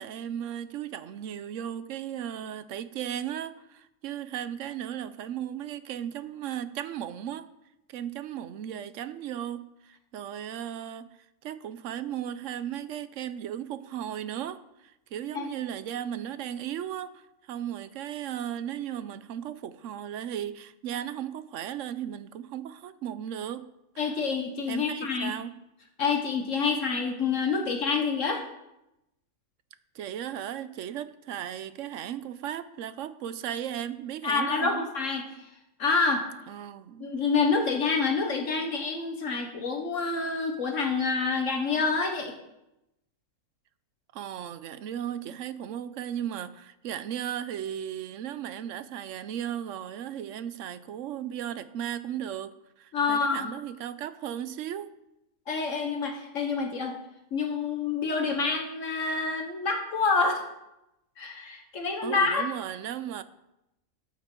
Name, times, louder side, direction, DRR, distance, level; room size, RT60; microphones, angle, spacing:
voice 1, 0.0-7.5 7.9-11.1 11.4-23.7 24.7-25.6 29.9-34.9 36.5-37.1 44.1-54.9 62.0-63.2, right 10 dB, 65° right, 13 dB, 0.9 m, -36 dB
voice 2, 24.0-25.3 26.0-28.4 34.2-35.2 35.8-36.2 37.0-42.3 52.9-53.5 55.5-56.9 57.3-60.4 61.2-62.4, left 4 dB, 60° left, 4 dB, 1.4 m, -27 dB
13.0 x 8.7 x 3.7 m, 0.89 s
omnidirectional pair, 1.5 m